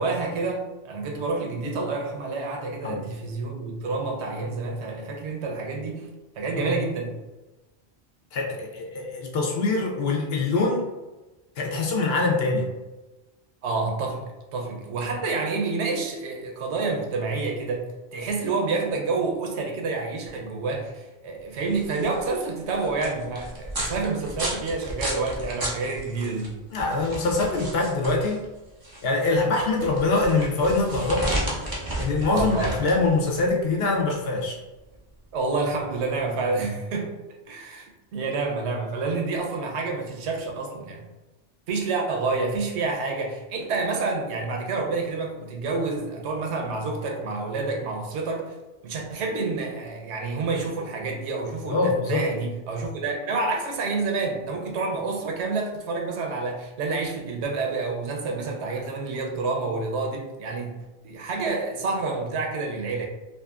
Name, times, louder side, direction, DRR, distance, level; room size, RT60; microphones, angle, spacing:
voice 1, 0.0-6.1 6.4-7.1 13.6-17.9 18.1-26.5 32.3-32.7 35.3-37.1 37.5-41.1 41.7-48.5 48.8-60.8 61.0-63.1, right 3 dB, 80° right, 1 dB, 0.9 m, -28 dB
voice 2, 8.3-10.9 11.6-12.7 26.7-28.4 29.0-31.3 32.0-34.6 51.7-52.3, left 3 dB, 70° left, -1 dB, 0.8 m, -24 dB
sound 1, 21.6-36.1, right 1 dB, 30° right, 0.4 m, -33 dB
2.7 x 2.4 x 2.3 m, 1.1 s
omnidirectional pair, 1.1 m